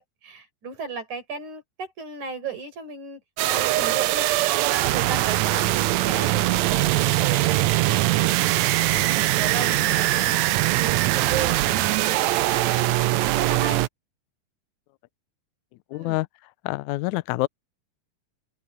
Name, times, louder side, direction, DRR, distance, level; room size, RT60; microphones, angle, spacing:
voice 1, 0.0-4.3 4.8-8.4 8.8-10.4 10.7-13.8 15.9-16.2, right 5 dB, 60° right, 6.8 m, -35 dB
sound 1, 3.4-13.9, right 16 dB, 80° right, 1.6 m, -22 dB
voice 2, 15.9-16.3 16.6-17.5, left 21 dB, 80° left, 1.7 m, -26 dB
omnidirectional pair, 3.9 m